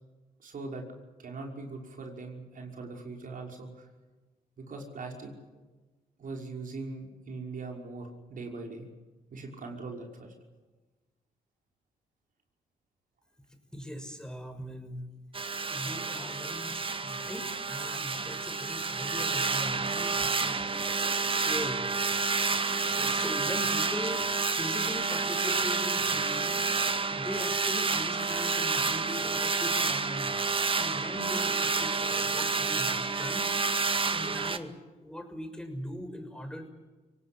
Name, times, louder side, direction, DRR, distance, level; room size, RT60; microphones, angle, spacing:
voice 1, 0.4-0.8 1.2-3.9 4.6-5.3 6.2-8.9 9.3-10.3, right 3 dB, 55° right, 1 dB, 5.9 m, -41 dB
voice 2, 13.7-15.1 15.7-20.6 21.1-21.8 22.2-22.6 23.0-26.7 27.1-30.3 30.8-33.5 33.9-34.7 35.0-36.7, equal, 5° left, 6 dB, 6.0 m, -40 dB
sound 1, 15.3-34.6, right 4 dB, 35° right, 1.9 m, -29 dB
25.5 x 18.5 x 8.8 m, 1.2 s
supercardioid pair, 55°, 16 cm